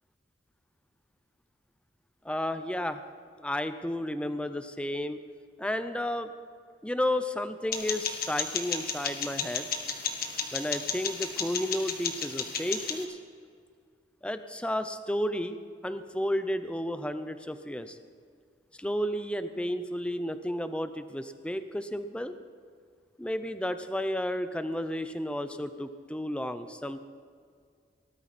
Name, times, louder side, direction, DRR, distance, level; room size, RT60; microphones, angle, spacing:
voice 1, 2.2-3.0 3.4-5.2 5.6-6.3 6.8-9.7 10.5-13.2 14.2-15.6 15.8-18.0 18.8-22.3 23.2-27.0, left 1 dB, 5° left, 10 dB, 0.6 m, -32 dB
sound 1, 7.7-13.0, left 6 dB, 50° left, 1.5 m, -33 dB
19.0 x 13.0 x 4.2 m, 2.2 s
head